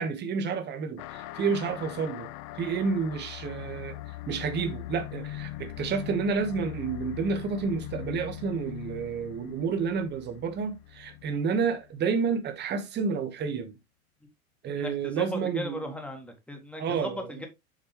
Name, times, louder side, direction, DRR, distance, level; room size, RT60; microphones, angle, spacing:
voice 1, 0.0-2.3 2.5-4.0 4.3-13.8 14.6-15.9 16.8-17.4, right 5 dB, 25° right, 1.3 m, -30 dB
sound 1, 1.0-12.0, left 15 dB, 40° left, 0.6 m, -41 dB
voice 2, 14.8-17.5, equal, 5° left, 1.8 m, -37 dB
7.6 x 5.1 x 3.3 m
figure-of-eight pair, 90°, 42 cm